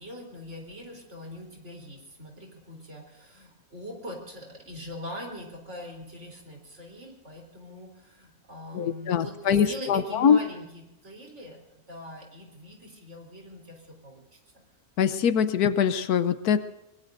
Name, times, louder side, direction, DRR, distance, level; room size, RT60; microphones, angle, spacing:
voice 1, 0.0-14.2, equal, 50° right, 0 dB, 4.0 m, -42 dB
voice 2, 8.7-10.4 15.0-16.6, left 7 dB, 75° left, 12 dB, 1.3 m, -23 dB
24.0 x 21.5 x 2.6 m, 0.92 s
omnidirectional pair, 1.6 m